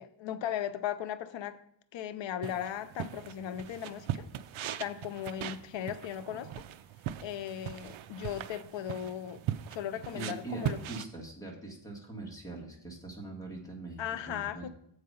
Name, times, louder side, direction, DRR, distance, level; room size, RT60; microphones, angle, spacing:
voice 1, 0.0-1.6 1.9-4.3 4.8-6.7 7.2-9.4 9.7-10.8 14.0-14.7, left 10 dB, 70° left, 0.7 m, -37 dB
sound 1, 2.4-11.0, right 11 dB, 80° right, 0.6 m, -40 dB
voice 2, 10.1-14.0 14.3-14.6, right 2 dB, 5° left, 1.9 m, -42 dB
7.5 x 4.9 x 5.5 m
wide cardioid pair, 135°, 47 cm